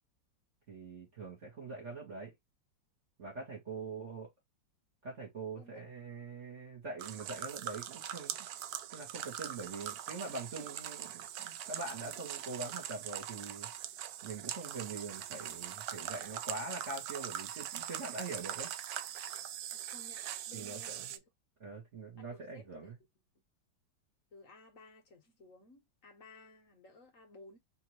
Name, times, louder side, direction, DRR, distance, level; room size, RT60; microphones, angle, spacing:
voice 1, 0.7-2.3 3.2-4.3 5.0-8.4 8.9-13.7 14.2-18.7 20.5-21.1 21.6-23.0, right 3 dB, 40° right, 2.0 m, -43 dB
sound 1, 7.0-21.2, right 11 dB, 70° right, 0.9 m, -42 dB
voice 2, 19.7-21.3 22.2-22.9 24.3-27.6, left 2 dB, 50° left, 1.5 m, -57 dB
4.3 x 3.0 x 3.1 m
omnidirectional pair, 2.0 m